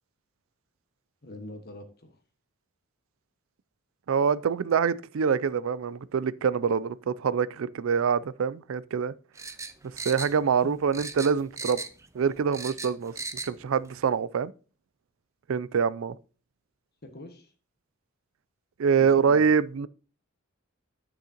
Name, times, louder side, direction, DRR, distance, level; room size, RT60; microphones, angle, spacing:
voice 1, 1.2-2.2 10.6-10.7 17.0-17.5 19.0-19.5, left 1 dB, 50° left, 1.5 m, -43 dB
voice 2, 4.1-9.1 10.0-11.8 12.1-13.1 13.5-14.5 15.5-16.1 18.8-19.9, right 6 dB, 75° right, 0.4 m, -25 dB
sound 1, 9.3-10.7 10.9-12.1 12.3-13.5 13.8-13.9, right 3 dB, 15° right, 0.5 m, -37 dB
10.0 x 6.4 x 2.9 m
head